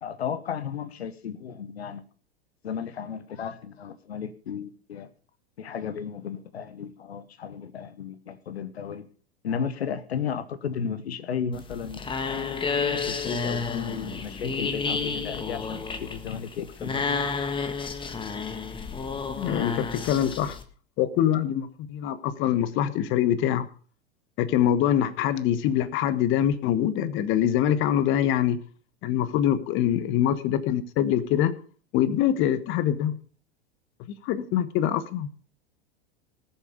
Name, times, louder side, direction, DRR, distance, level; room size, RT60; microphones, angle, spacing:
voice 1, 0.0-2.0 2.6-5.1 5.6-9.1 9.4-12.6 12.9-17.0, left 7 dB, 75° left, 13 dB, 1.2 m, -34 dB
sound 1, 11.5-20.6, left 5 dB, 15° left, 1.6 m, -31 dB
voice 2, 19.3-20.6 21.0-23.7 24.4-28.6 29.0-31.5 31.9-33.1 34.2-35.3, left 10 dB, 40° left, 14 dB, 1.2 m, -24 dB
19.0 x 7.2 x 5.2 m, 0.42 s
figure-of-eight pair, 95°, 32 cm